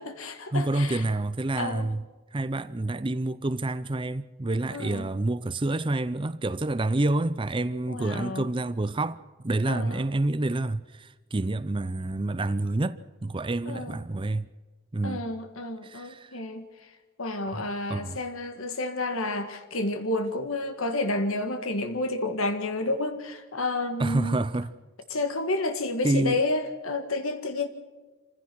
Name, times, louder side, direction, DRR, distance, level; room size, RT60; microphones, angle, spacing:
voice 1, 0.0-1.0 1.6-1.9 4.7-5.1 7.9-8.4 9.7-10.0 13.7-14.0 15.0-16.7 17.2-24.4 25.1-27.7, left 2 dB, 75° left, 1.8 m, -30 dB
voice 2, 0.5-2.0 2.3-14.5 14.9-15.2 15.8-16.4 17.5-18.2 24.0-24.7 26.0-26.4, right 2 dB, 25° right, 0.5 m, -28 dB
26.5 x 16.0 x 6.2 m
head